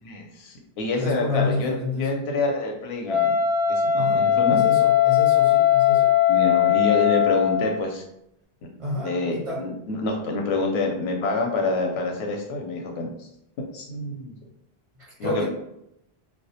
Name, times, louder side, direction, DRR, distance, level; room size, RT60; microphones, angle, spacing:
voice 1, 0.0-3.4 3.7-4.6 6.3-8.0 8.6-8.7 9.0-13.3 13.6-14.3 15.2-15.5, left 3 dB, 90° left, 1 dB, 0.8 m, -27 dB
voice 2, 1.0-2.1 3.9-4.2 4.5-6.1 8.8-9.6 15.0-15.5, left 3 dB, 40° right, -6 dB, 0.5 m, -29 dB
Wind instrument woodwind instrument, 3.1-7.8, left 10 dB, 5° left, 0.7 m, -19 dB
2.2 x 2.1 x 2.7 m, 0.79 s
omnidirectional pair, 1.0 m